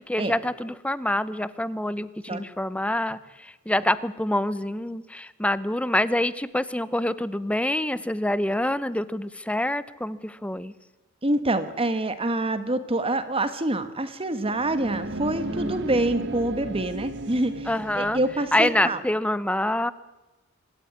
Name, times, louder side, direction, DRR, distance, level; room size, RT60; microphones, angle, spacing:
voice 1, 0.0-10.7 15.5-15.8 17.7-18.2 18.5-19.9, left 1 dB, 5° left, 16 dB, 0.8 m, -26 dB
voice 2, 11.2-17.7 17.9-19.0, right 1 dB, 30° right, 11 dB, 1.4 m, -26 dB
sound 1, 14.3-18.9, right 2 dB, 60° right, 1.7 m, -35 dB
25.0 x 13.0 x 9.6 m, 1.1 s
head